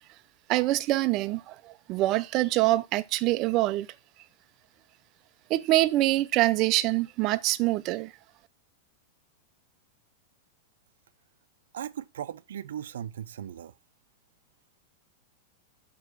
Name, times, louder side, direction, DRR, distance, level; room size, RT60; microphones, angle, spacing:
voice 1, 0.5-3.9 5.5-8.1, right 17 dB, 35° right, 0.4 m, -25 dB
voice 2, 11.7-13.7, right 10 dB, 90° right, 0.5 m, -37 dB
5.5 x 4.9 x 6.3 m
supercardioid pair, 155°, 0 cm